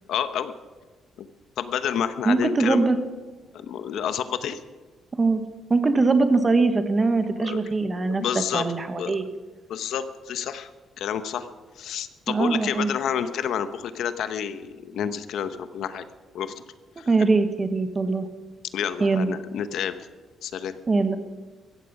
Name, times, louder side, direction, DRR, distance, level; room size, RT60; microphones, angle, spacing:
voice 1, 0.1-0.5 1.2-1.3 1.6-2.9 3.5-4.6 7.4-7.6 8.1-8.7 9.0-9.2 9.7-10.7 11.0-11.5 11.8-16.0 16.3-16.6 17.0-17.1 18.7-20.1 20.4-20.8, left 8 dB, 70° left, 11 dB, 0.9 m, -29 dB
voice 2, 2.2-3.0 5.2-5.4 5.7-8.2 8.5-9.3 12.3-12.9 17.1-18.3 19.0-19.4 20.9-21.2, right 3 dB, 25° right, 9 dB, 1.3 m, -22 dB
15.0 x 15.0 x 5.4 m, 1.4 s
cardioid pair, 140°, 0 cm